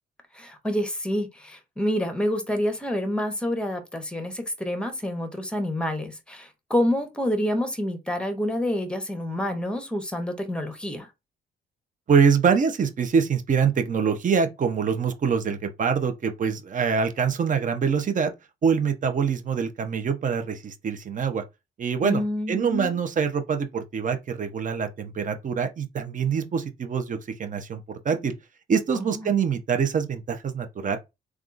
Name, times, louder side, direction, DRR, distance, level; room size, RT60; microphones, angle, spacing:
voice 1, 0.3-11.1 22.0-23.0 28.9-29.3, left 1 dB, 5° left, 0.9 m, -28 dB
voice 2, 12.1-18.3 18.6-21.4 21.8-22.2 22.5-27.8 28.0-28.3 28.7-31.0, right 6 dB, 40° right, 0.7 m, -24 dB
3.4 x 2.4 x 2.5 m
cardioid pair, 90°, 20 cm